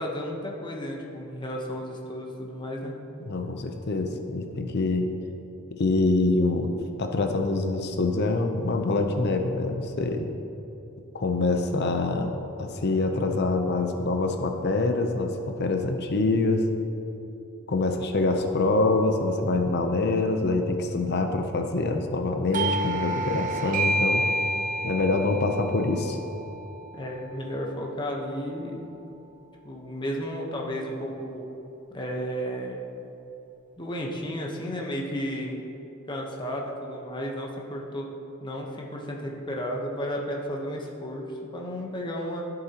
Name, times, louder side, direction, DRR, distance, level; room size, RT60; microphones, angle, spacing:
voice 1, 0.0-3.0 26.9-28.9 29.6-31.5 31.9-32.8 33.8-35.6 36.1-38.1 38.4-42.4, equal, 20° left, -1 dB, 1.0 m, -33 dB
voice 2, 3.2-5.2 5.7-6.7 7.0-10.3 11.1-16.6 17.7-24.2 24.8-26.2, left 3 dB, 50° left, 5 dB, 0.6 m, -25 dB
Doorbell, 22.5-27.8, right 1 dB, 35° right, 0.4 m, -30 dB
12.5 x 7.7 x 2.9 m, 3.0 s
head